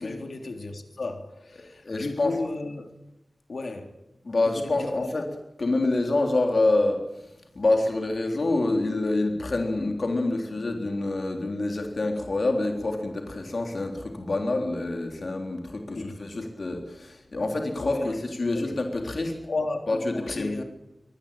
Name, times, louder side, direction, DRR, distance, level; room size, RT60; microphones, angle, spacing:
voice 1, 0.0-2.9 3.5-4.0 4.5-5.1 15.9-16.1 17.8-18.2 18.5-18.7 19.5-20.6, left 3 dB, 75° left, 5 dB, 3.3 m, -34 dB
voice 2, 1.8-2.4 4.2-5.3 5.6-19.4 19.9-20.6, left 2 dB, 60° left, 3 dB, 3.7 m, -27 dB
24.0 x 19.5 x 8.8 m, 0.89 s
wide cardioid pair, 70°, 0 cm